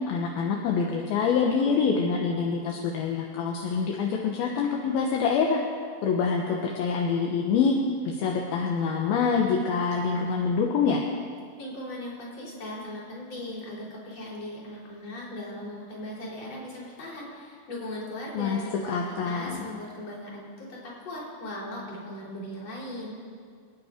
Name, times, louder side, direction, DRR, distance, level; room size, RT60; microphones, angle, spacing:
voice 1, 0.1-5.6 6.0-7.8 8.1-11.0 18.3-19.6, left 5 dB, 75° left, 0 dB, 2.9 m, -26 dB
voice 2, 11.6-23.2, left 1 dB, 40° left, -4 dB, 4.7 m, -38 dB
27.0 x 9.4 x 5.1 m, 2.1 s
omnidirectional pair, 4.5 m